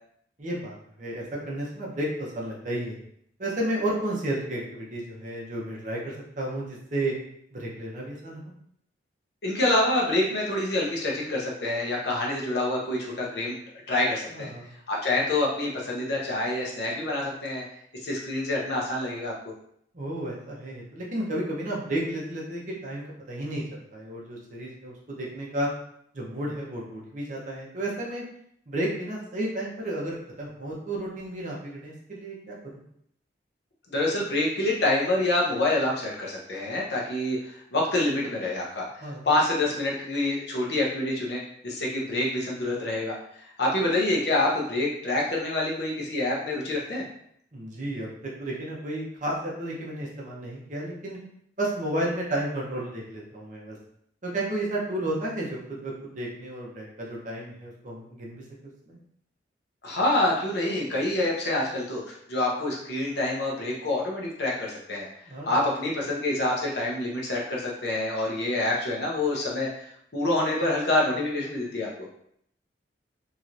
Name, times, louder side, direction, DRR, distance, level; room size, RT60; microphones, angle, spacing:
voice 1, 0.4-3.0 3.4-7.1 7.5-8.5 14.3-14.7 19.9-25.7 26.1-28.2 28.7-32.8 39.0-39.3 47.5-51.2 51.6-53.8 54.2-58.4 58.9-59.0 65.2-65.6, right 1 dB, 45° right, -3 dB, 0.7 m, -32 dB
voice 2, 9.4-13.6 13.9-14.5 14.9-17.6 18.0-19.3 33.9-37.4 37.7-38.8 39.2-43.1 43.6-47.0 59.8-65.1 65.5-69.7 70.1-72.1, left 2 dB, 65° left, -3 dB, 0.8 m, -26 dB
3.0 x 2.9 x 2.5 m, 0.71 s
head